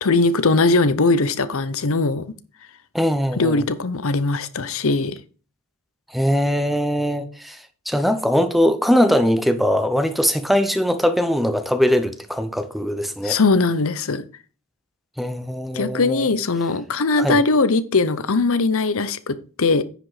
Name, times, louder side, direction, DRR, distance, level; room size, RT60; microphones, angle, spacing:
voice 1, 0.0-2.3 3.4-5.2 13.2-14.2 15.7-19.8, left 3 dB, 65° left, 0.8 m, -20 dB
voice 2, 2.9-3.6 6.1-13.4 15.2-16.3 17.2-17.4, equal, ahead, 0.8 m, -21 dB
9.8 x 5.1 x 4.9 m
head